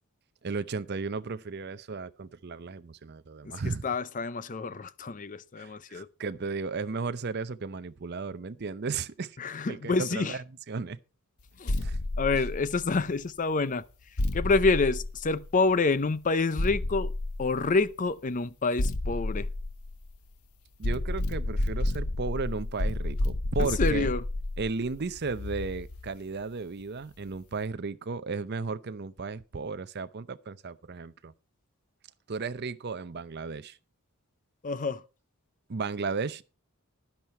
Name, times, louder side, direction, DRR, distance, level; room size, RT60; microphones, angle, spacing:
voice 1, 0.4-3.8 5.6-9.4 9.7-11.0 11.8-12.0 20.8-24.1 24.6-31.3 32.3-33.8 35.7-36.4, right 4 dB, 45° right, 0.6 m, -34 dB
voice 2, 3.8-6.1 9.4-10.4 11.6-11.8 12.2-13.8 14.3-17.1 17.4-19.5 23.6-24.2 34.6-35.0, left 3 dB, 35° left, 0.5 m, -27 dB
sound 1, 11.7-13.2 14.2-15.8 16.6-17.9 18.8-20.4 20.8-26.1, left 1 dB, 75° left, 1.1 m, -31 dB
11.0 x 10.5 x 4.3 m
head